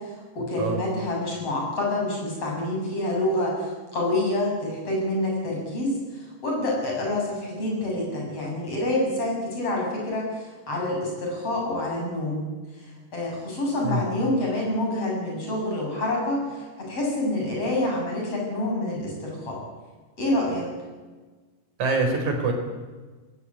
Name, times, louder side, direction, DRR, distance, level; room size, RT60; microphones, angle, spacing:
voice 1, 0.4-6.0 6.4-12.4 12.8-12.9 13.1-19.6 20.2-20.7, left 1 dB, 45° left, -1 dB, 8.9 m, -27 dB
voice 2, 21.8-22.5, right 3 dB, 60° right, 4 dB, 5.7 m, -24 dB
20.0 x 17.5 x 9.9 m, 1.3 s
omnidirectional pair, 4.0 m